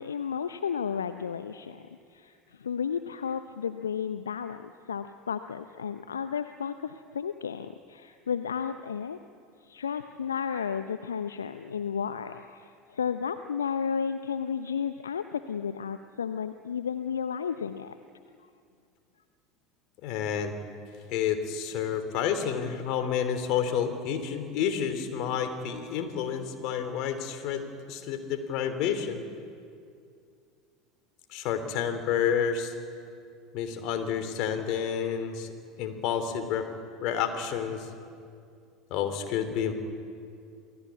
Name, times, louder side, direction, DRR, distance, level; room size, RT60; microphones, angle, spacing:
voice 1, 0.0-1.8 2.1-9.2 9.6-17.9, left 7 dB, 75° left, 10 dB, 0.7 m, -33 dB
voice 2, 20.0-20.6 21.1-29.2 31.3-32.7 33.5-35.5 35.8-36.7 37.0-37.9 38.9-39.7, left 8 dB, 50° left, 8 dB, 3.2 m, -29 dB
28.0 x 17.5 x 8.4 m, 2.4 s
figure-of-eight pair, 70°, 0 cm